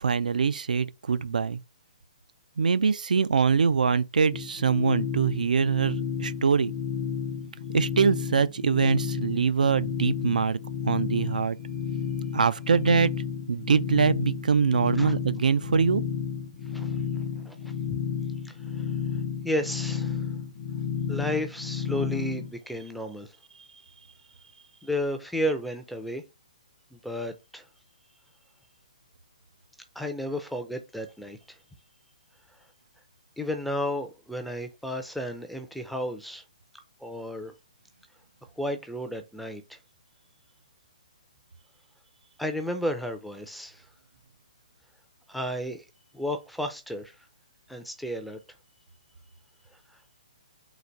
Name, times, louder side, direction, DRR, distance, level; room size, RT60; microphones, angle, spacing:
voice 1, 0.0-1.6 2.6-6.7 7.7-10.6 10.8-11.6 12.3-13.1 13.5-16.0, right 5 dB, 90° right, 0.4 m, -23 dB
sound 1, 4.3-22.5, left 7 dB, 45° left, 0.6 m, -32 dB
voice 2, 18.4-18.9 19.4-20.3 21.1-23.3 24.8-26.2 26.9-27.7 30.0-31.6 33.4-36.4 37.0-37.5 38.6-39.8 42.4-43.9 45.3-45.8 46.1-47.2 47.7-48.4, equal, ahead, 0.4 m, -32 dB
4.0 x 2.5 x 4.4 m
hypercardioid pair, 160°, 4 cm